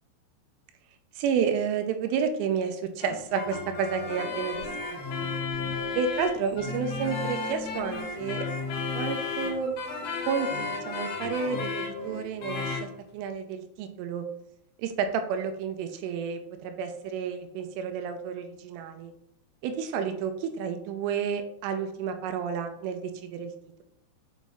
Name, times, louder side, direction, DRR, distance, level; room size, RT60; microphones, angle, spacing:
voice 1, 1.2-5.3 6.0-8.5 8.9-9.7 10.3-14.2 14.8-19.1 19.6-23.5, right 6 dB, 85° right, 7 dB, 3.2 m, -31 dB
sound 1, 3.0-12.9, left 4 dB, 70° left, 2.2 m, -33 dB
7.4 x 5.2 x 3.5 m, 0.76 s
omnidirectional pair, 5.8 m